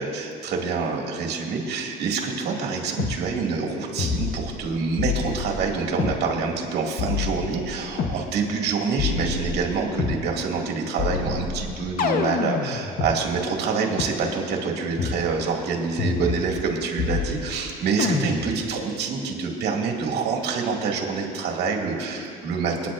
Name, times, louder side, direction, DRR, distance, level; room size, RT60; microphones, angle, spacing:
voice 1, 0.0-22.9, right 5 dB, 75° right, 0 dB, 2.1 m, -26 dB
sound 1, 3.0-3.2 4.0-4.7 5.0-6.2 7.0-8.2 9.0-10.2 11.0-13.1 14.0-14.1 15.0-15.2 16.0-16.7 17.0-17.6 18.0-18.6, left 5 dB, 60° left, 1.0 m, -27 dB
28.5 x 9.9 x 2.5 m, 2.4 s
cardioid pair, 110°, 17 cm